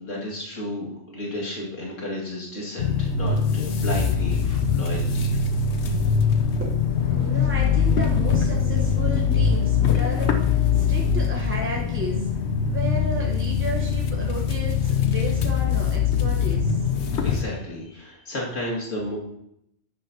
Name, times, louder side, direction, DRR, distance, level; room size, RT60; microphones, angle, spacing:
voice 1, 0.0-5.3 17.2-19.2, left 1 dB, 85° left, -4 dB, 2.6 m, -32 dB
sound 1, 2.8-17.4, left 6 dB, 65° left, 1.1 m, -22 dB
voice 2, 6.6-12.3 12.7-16.9 19.0-19.1, equal, 10° right, -2 dB, 0.9 m, -34 dB
11.5 x 9.0 x 2.8 m, 0.76 s
omnidirectional pair, 1.3 m